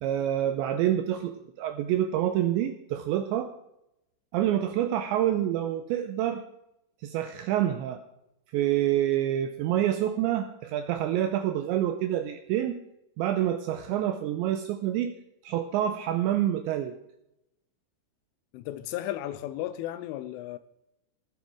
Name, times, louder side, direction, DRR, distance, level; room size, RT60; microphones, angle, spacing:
voice 1, 0.0-3.5 4.3-6.4 7.0-8.0 8.5-12.8 13.2-15.1 15.4-17.0, right 11 dB, 90° right, 2.6 m, -27 dB
voice 2, 18.5-20.6, left 13 dB, 80° left, 2.9 m, -34 dB
19.5 x 7.6 x 4.6 m
omnidirectional pair, 6.0 m